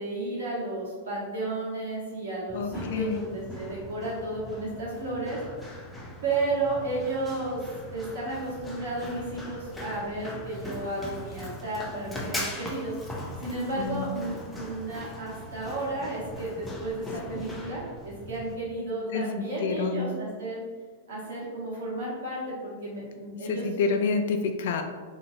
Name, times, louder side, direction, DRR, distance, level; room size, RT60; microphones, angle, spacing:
voice 1, 0.0-5.4 6.2-7.6 7.9-13.0 13.4-20.6 21.1-23.6, right 2 dB, 70° right, -5 dB, 1.1 m, -33 dB
voice 2, 2.5-3.2 13.8-14.1 19.1-20.2 23.4-24.8, left 5 dB, 65° left, 6 dB, 0.3 m, -28 dB
Run, 2.5-18.5, left 1 dB, 10° left, 0.6 m, -40 dB
2.9 x 2.5 x 2.6 m, 1.5 s
hypercardioid pair, 105°, 0 cm